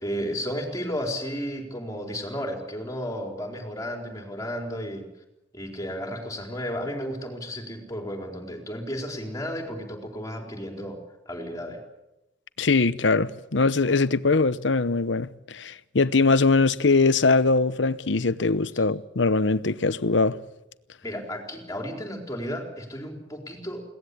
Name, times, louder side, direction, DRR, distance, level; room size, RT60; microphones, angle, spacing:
voice 1, 0.0-5.0 5.5-11.0 11.3-11.8 21.0-23.8, equal, 20° left, 4.2 m, -33 dB
voice 2, 12.6-20.4, left 3 dB, 75° left, 0.9 m, -22 dB
21.5 x 18.5 x 8.6 m
head